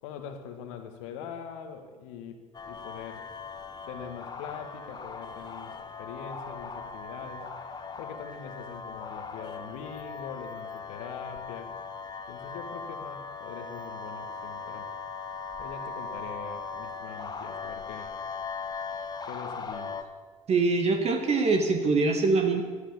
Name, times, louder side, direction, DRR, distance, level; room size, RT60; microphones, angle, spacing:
voice 1, 0.0-3.3 3.9-7.5 8.0-11.7 12.3-14.9 15.6-18.2 19.2-20.1, left 7 dB, 65° left, 6 dB, 1.9 m, -43 dB
sound 1, 2.5-20.0, left 4 dB, 25° left, 1.4 m, -39 dB
voice 2, 20.5-22.6, right 3 dB, 35° right, 4 dB, 2.1 m, -23 dB
15.0 x 12.5 x 7.1 m, 1.5 s
figure-of-eight pair, 60°, 17 cm